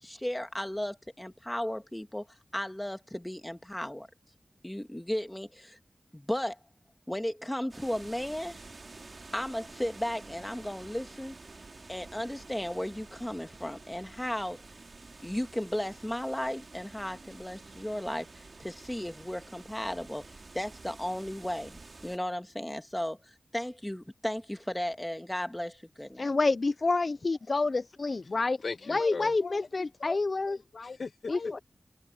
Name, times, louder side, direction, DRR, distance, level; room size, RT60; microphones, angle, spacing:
voice 1, 0.0-2.2 2.5-4.1 4.6-5.8 6.1-6.6 7.1-8.6 9.3-11.3 11.9-14.6 15.2-26.3, left 1 dB, 10° left, 1.7 m, -35 dB
sound 1, 7.7-22.2, right 3 dB, 55° right, 2.4 m, -50 dB
voice 2, 26.2-28.6 28.9-30.6 31.3-31.6, left 3 dB, 50° left, 0.3 m, -28 dB
voice 3, 28.6-30.2 30.5-31.6, left 4 dB, 70° left, 1.2 m, -39 dB
wide cardioid pair, 85°, 0 cm